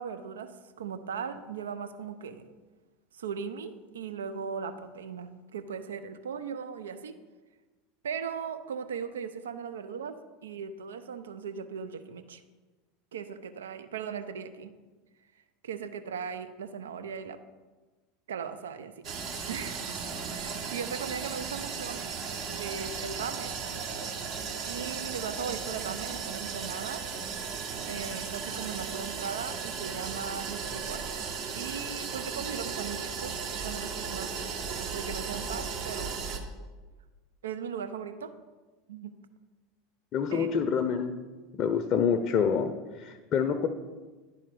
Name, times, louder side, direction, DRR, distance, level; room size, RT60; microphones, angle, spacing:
voice 1, 0.0-2.4 3.1-7.1 8.0-10.2 10.4-12.4 13.1-14.7 15.6-17.4 18.3-18.9 19.5-20.0 20.3-22.0 22.6-23.6 24.7-27.0 27.9-31.1 31.6-33.4 33.6-34.3 34.9-36.2 37.4-38.3 38.9-39.1 40.3-40.5, right 6 dB, 75° right, 9 dB, 0.5 m, -38 dB
sound 1, 19.0-36.4, right 5 dB, 50° right, 1.1 m, -36 dB
voice 2, 40.1-41.1 41.5-43.7, left 7 dB, 40° left, 7 dB, 0.6 m, -27 dB
10.5 x 4.3 x 5.2 m, 1.3 s
figure-of-eight pair, 80°, 0 cm